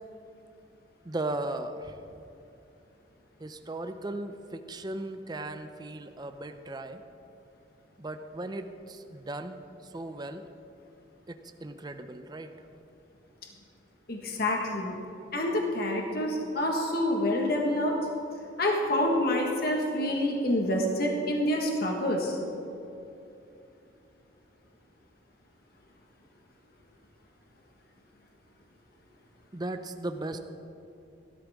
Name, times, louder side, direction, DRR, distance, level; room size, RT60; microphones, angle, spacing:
voice 1, 1.0-2.0 3.4-7.0 8.0-10.5 11.3-12.5 29.5-30.4, right 2 dB, 20° right, 8 dB, 0.5 m, -37 dB
voice 2, 14.1-14.9 15.3-17.9 18.6-22.4, left 1 dB, 55° left, 0 dB, 1.5 m, -27 dB
16.5 x 12.5 x 3.6 m, 2.8 s
head